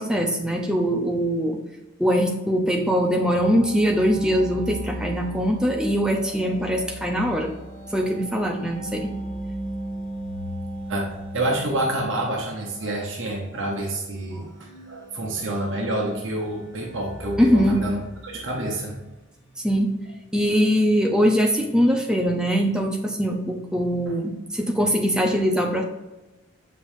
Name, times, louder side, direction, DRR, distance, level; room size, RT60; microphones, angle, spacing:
voice 1, 0.0-1.6 2.0-7.5 7.9-9.1 17.4-17.8 19.6-19.9 20.3-25.8, equal, 5° right, 2 dB, 0.6 m, -22 dB
sound 1, 3.3-19.0 19.5-19.6, right 1 dB, 45° left, 1.6 m, -38 dB
voice 2, 11.3-18.0 18.2-19.0 24.1-24.2, right 1 dB, 65° right, -1 dB, 1.1 m, -28 dB
7.8 x 5.4 x 2.7 m, 1.1 s
head